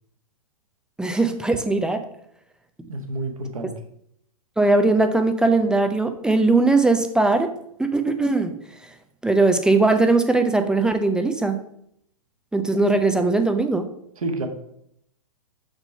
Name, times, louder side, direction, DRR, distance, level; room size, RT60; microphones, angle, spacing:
voice 1, 1.0-2.1 4.6-7.5 7.8-8.6 9.2-11.6 12.5-13.9, right 3 dB, 5° right, 7 dB, 0.6 m, -20 dB
voice 2, 2.9-3.7 14.2-14.5, right 2 dB, 70° right, 5 dB, 1.5 m, -28 dB
6.4 x 6.0 x 5.5 m, 0.73 s
figure-of-eight pair, 110°, 18 cm